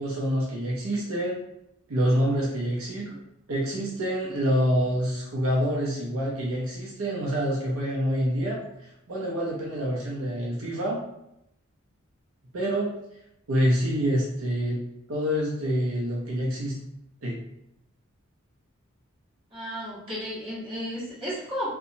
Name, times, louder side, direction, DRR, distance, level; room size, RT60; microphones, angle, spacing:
voice 1, 0.0-1.4 1.9-3.2 3.5-8.6 9.1-11.0 12.5-12.9 13.5-14.8 15.1-16.8 17.2-17.4, equal, 75° right, -4 dB, 0.6 m, -26 dB
voice 2, 19.5-21.7, equal, 25° right, -9 dB, 1.3 m, -33 dB
2.8 x 2.2 x 2.6 m, 0.81 s
head